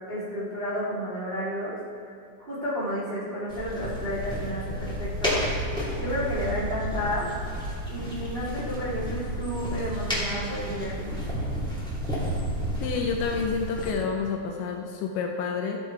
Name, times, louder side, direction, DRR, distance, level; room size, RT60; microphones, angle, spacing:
voice 1, 0.1-1.8 2.5-5.6 6.0-7.3 7.9-11.1, equal, 80° right, -7 dB, 0.5 m, -31 dB
sound 1, 3.5-13.9, equal, 5° left, 0.6 m, -31 dB
voice 2, 12.8-15.8, left 5 dB, 80° left, 2 dB, 2.8 m, -29 dB
14.5 x 6.8 x 4.7 m, 2.5 s
omnidirectional pair, 5.8 m